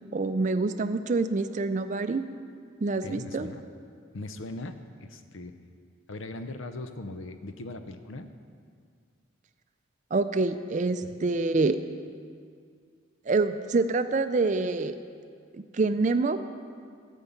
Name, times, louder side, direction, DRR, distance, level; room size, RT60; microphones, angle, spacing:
voice 1, 0.1-2.2 2.8-3.5 10.1-11.8 13.3-15.0 15.5-16.4, right 3 dB, 35° right, 10 dB, 0.4 m, -26 dB
voice 2, 3.0-3.6 4.1-5.6 6.1-8.3 11.0-11.2, left 2 dB, 75° left, 9 dB, 0.7 m, -39 dB
14.0 x 5.4 x 7.2 m, 2.2 s
head